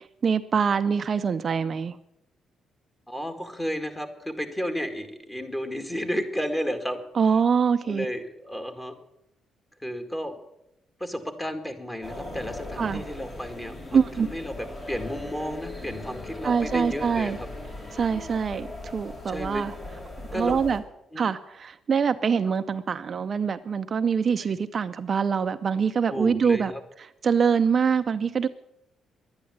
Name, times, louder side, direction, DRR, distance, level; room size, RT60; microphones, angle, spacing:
voice 1, 0.0-2.0 7.1-8.1 12.8-13.0 13.9-14.3 16.4-17.4 17.9-19.7 20.3-20.8 21.2-26.7 27.0-28.5, right 6 dB, 45° right, 9 dB, 0.6 m, -24 dB
voice 2, 3.1-7.0 7.9-8.9 9.8-10.4 11.0-17.5 18.1-18.3 19.3-19.6 20.3-20.6 21.1-21.2 26.1-26.8, equal, 15° left, 7 dB, 2.1 m, -32 dB
sound 1, 12.0-20.8, left 2 dB, 35° left, 4.2 m, -38 dB
11.5 x 9.9 x 9.5 m, 0.85 s
cardioid pair, 90°, 0 cm